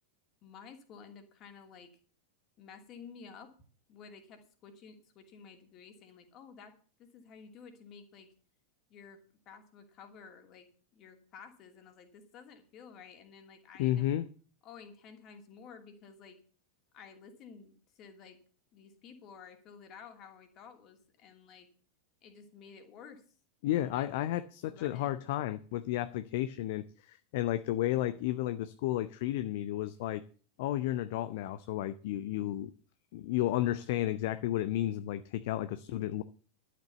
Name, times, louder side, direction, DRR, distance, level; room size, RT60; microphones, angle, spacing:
voice 1, 0.4-1.9 2.6-3.5 3.9-6.7 7.0-8.3 8.9-10.7 10.9-14.1 14.6-16.4 16.9-18.4 18.7-21.7 22.2-23.2 23.7-24.1 24.6-25.1, left 6 dB, 35° left, 2.7 m, -52 dB
voice 2, 13.8-14.2 23.6-30.2 30.6-32.7 33.1-36.2, left 13 dB, 50° left, 0.6 m, -32 dB
12.0 x 8.4 x 7.0 m
figure-of-eight pair, 90°, 0 cm